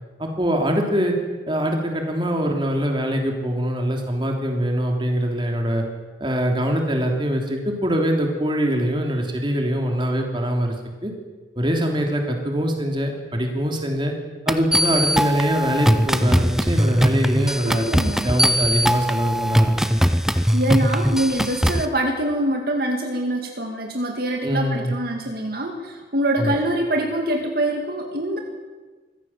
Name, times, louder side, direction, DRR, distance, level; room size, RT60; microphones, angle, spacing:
voice 1, 0.2-1.1 1.5-5.8 6.2-10.7 11.0-11.1 11.5-14.1 14.4-17.9 18.2-20.1 24.4-24.9 26.4-26.6, equal, 25° right, 2 dB, 3.2 m, -23 dB
sound 1, 14.5-21.9, equal, ahead, 0.7 m, -20 dB
voice 2, 17.6-18.3 20.5-28.4, right 1 dB, 55° right, 2 dB, 2.0 m, -24 dB
24.0 x 16.0 x 7.5 m, 1.3 s
head